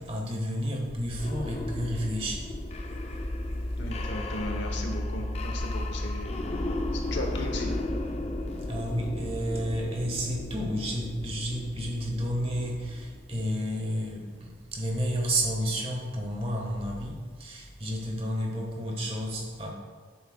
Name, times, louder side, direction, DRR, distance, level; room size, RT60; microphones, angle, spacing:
voice 1, 0.1-2.5 8.7-19.7, equal, 30° right, 0 dB, 1.2 m, -31 dB
sound 1, 0.8-13.6, left 1 dB, 35° left, 0.4 m, -34 dB
voice 2, 3.8-6.4 6.9-7.7, left 2 dB, 65° left, 3 dB, 0.9 m, -36 dB
8.4 x 7.7 x 2.2 m, 1.5 s
head